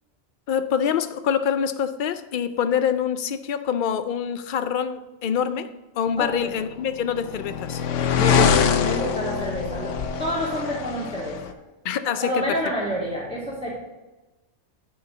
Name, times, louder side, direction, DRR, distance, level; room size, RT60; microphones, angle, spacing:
voice 1, 0.5-5.7 6.0-7.8 11.8-12.6, left 8 dB, 55° left, 10 dB, 0.6 m, -25 dB
voice 2, 6.2-6.5 8.1-11.4 12.2-13.7, equal, 5° right, -10 dB, 2.5 m, -28 dB
sound 1, 6.6-11.5, left 7 dB, 90° left, 1.0 m, -24 dB
9.6 x 6.6 x 3.9 m, 1.1 s
omnidirectional pair, 1.2 m